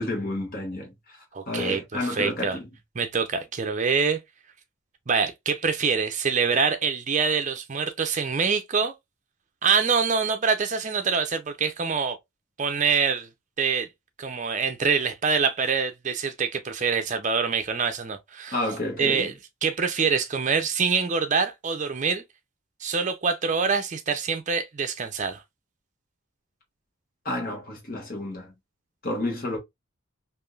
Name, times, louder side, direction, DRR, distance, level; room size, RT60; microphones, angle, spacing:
voice 1, 0.0-1.2 1.5-2.6 18.5-19.3 27.2-28.5 29.0-29.6, left 2 dB, 45° left, 1.1 m, -30 dB
voice 2, 1.3-2.6 2.9-4.2 5.1-8.9 9.6-12.2 12.6-13.3 13.6-13.9 14.2-18.6 19.0-19.3 19.6-22.2 22.8-25.4, right 5 dB, 35° right, 0.6 m, -25 dB
3.5 x 2.6 x 2.4 m
head